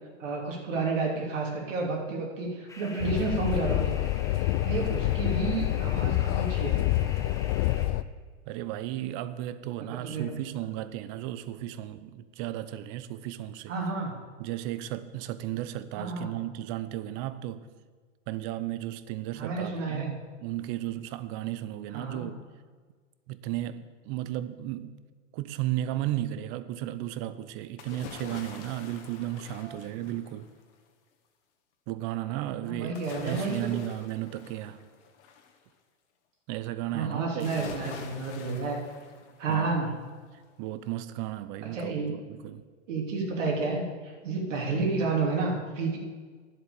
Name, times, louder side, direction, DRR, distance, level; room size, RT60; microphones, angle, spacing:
voice 1, 0.2-4.0 4.6-6.8 9.9-10.3 13.7-14.1 16.0-16.3 19.3-20.2 21.9-22.3 29.6-29.8 32.6-33.8 36.9-38.8 39.4-39.9 41.7-42.1 42.9-46.0, right 3 dB, 75° right, 3.0 m, -30 dB
sound 1, 2.7-7.9, left 2 dB, 10° left, 1.3 m, -47 dB
sound 2, 3.0-8.0, left 15 dB, 45° left, 0.5 m, -27 dB
voice 2, 8.5-13.7 14.4-17.7 18.3-22.4 23.3-25.0 25.3-30.5 31.9-34.8 36.5-37.7 39.5-39.7 40.6-42.6, right 13 dB, 45° right, 0.8 m, -34 dB
sound 3, 27.8-30.6 32.9-35.6 37.4-39.7 40.1-40.2, left 6 dB, 65° left, 1.8 m, -45 dB
10.5 x 7.7 x 7.0 m
hypercardioid pair, 115°, 38 cm